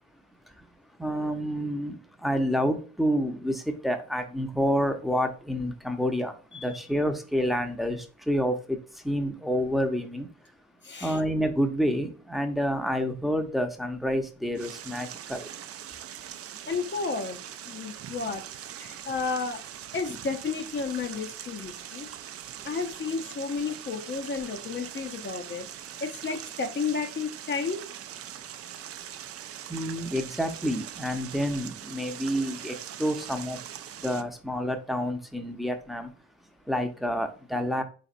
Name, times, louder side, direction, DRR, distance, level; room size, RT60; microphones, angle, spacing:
voice 1, 1.0-8.8 9.0-10.3 11.0-15.5 29.7-33.6 34.0-36.1 36.7-37.8, equal, ahead, 5 dB, 0.7 m, -28 dB
voice 2, 10.8-11.2 16.7-17.4 17.7-18.4 18.8-19.6 19.9-22.1 22.6-25.7 26.0-27.8, left 5 dB, 40° left, 5 dB, 0.6 m, -32 dB
sound 1, 14.6-34.2, right 10 dB, 50° right, 0.4 m, -42 dB
4.1 x 4.0 x 2.5 m, 0.37 s
cardioid pair, 90°, 30 cm